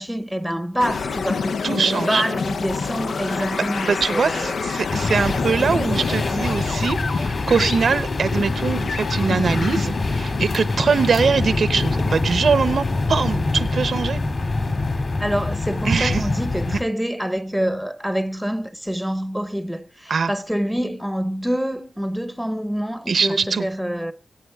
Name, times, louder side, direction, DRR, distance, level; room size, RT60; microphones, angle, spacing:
voice 1, 0.0-4.6 15.2-24.1, equal, ahead, 0.9 m, -26 dB
sound 1, 0.8-12.2, left 5 dB, 75° left, 0.6 m, -28 dB
voice 2, 1.6-2.2 3.5-14.2 15.8-16.2 16.7-16.8 20.1-20.3 23.1-23.7, right 5 dB, 70° right, 0.9 m, -22 dB
sound 2, 4.9-16.8, left 3 dB, 45° left, 2.5 m, -25 dB
25.5 x 8.6 x 3.5 m
wide cardioid pair, 120°, 0 cm